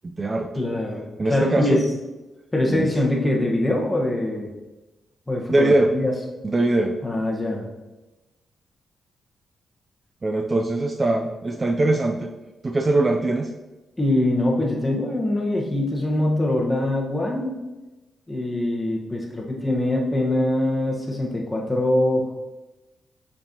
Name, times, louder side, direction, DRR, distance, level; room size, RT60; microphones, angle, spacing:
voice 1, 0.0-0.5 1.2-1.8 2.7-2.9 5.5-5.9 6.4-6.9 10.2-12.3 12.6-13.5, right 2 dB, 30° right, 4 dB, 0.4 m, -21 dB
voice 2, 0.5-1.0 1.3-1.8 2.5-4.5 5.3-6.1 7.0-7.6 14.0-17.6 18.3-22.4, left 1 dB, 15° left, -2 dB, 1.3 m, -23 dB
6.6 x 5.3 x 2.9 m, 1.1 s
cardioid pair, 95°, 0 cm